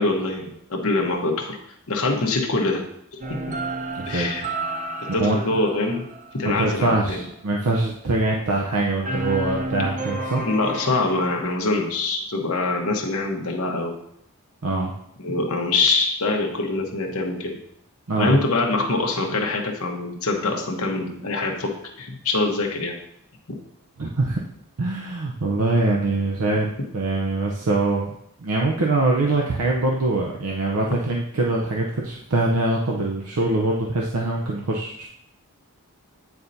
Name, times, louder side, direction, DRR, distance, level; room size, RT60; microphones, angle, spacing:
voice 1, 0.0-1.6 1.9-2.8 3.3-3.4 4.1-4.4 5.1-6.1 6.3-7.2 10.4-13.9 15.2-17.6 18.2-21.7 22.0-23.0, left 3 dB, 70° left, 1 dB, 1.0 m, -24 dB
sound 1, 3.2-6.9 9.0-11.4, right 2 dB, 35° right, 0.6 m, -31 dB
voice 2, 4.0-4.5 5.2-5.6 6.4-10.4 14.6-14.9 18.1-18.4 24.0-24.4 24.8-28.1 28.4-35.1, right 2 dB, 75° right, -2 dB, 0.7 m, -23 dB
8.9 x 4.2 x 2.7 m, 0.73 s
head